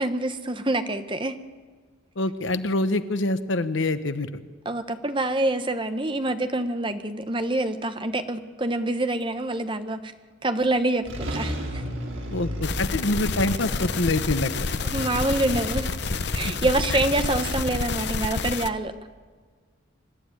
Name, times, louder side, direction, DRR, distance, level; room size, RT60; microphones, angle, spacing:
voice 1, 0.0-1.4 4.6-10.1 10.4-11.8 14.8-16.0 16.3-18.9, right 2 dB, 25° right, 1.0 m, -26 dB
voice 2, 2.2-4.3 12.3-14.7, left 2 dB, 75° left, 1.0 m, -25 dB
sound 1, 10.7-10.8 11.1-17.9, equal, 85° right, 4.2 m, -35 dB
sound 2, 12.6-18.7, left 4 dB, 55° left, 0.7 m, -29 dB
25.0 x 12.5 x 9.7 m
head